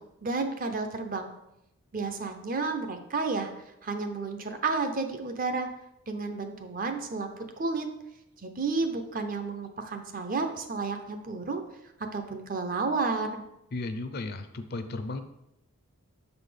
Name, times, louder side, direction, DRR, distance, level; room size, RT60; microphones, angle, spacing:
voice 1, 0.0-1.3 1.9-3.5 3.8-5.7 6.1-7.9 8.4-11.6 12.1-13.4, right 4 dB, 40° right, 6 dB, 0.7 m, -31 dB
voice 2, 13.7-15.2, left 2 dB, 45° left, 8 dB, 0.5 m, -35 dB
6.7 x 4.1 x 5.0 m, 0.84 s
head